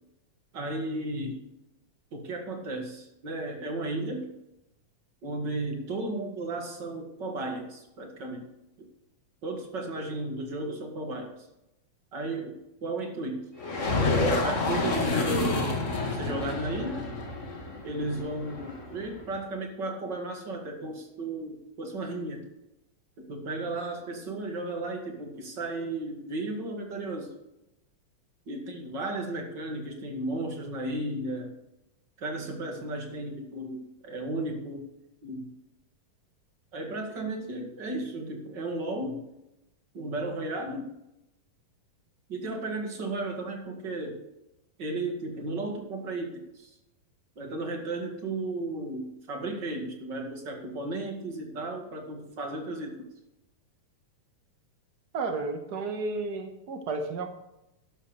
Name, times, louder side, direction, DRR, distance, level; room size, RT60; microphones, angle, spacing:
voice 1, 0.5-1.5 2.1-4.3 5.2-8.5 8.8-8.9 9.4-11.5 12.1-13.5 14.4-15.8 16.1-17.1 17.8-22.5 23.2-27.3 28.5-31.5 32.2-34.9 35.2-35.5 36.7-39.2 39.9-40.9 42.3-44.2 44.8-46.7 47.4-53.0, right 2 dB, 35° right, 2 dB, 2.3 m, -34 dB
sound 1, 13.6-19.2, left 2 dB, 30° left, 1.5 m, -29 dB
voice 2, 55.1-57.3, right 3 dB, 85° right, 5 dB, 0.8 m, -32 dB
13.0 x 11.5 x 3.3 m, 0.89 s
omnidirectional pair, 3.9 m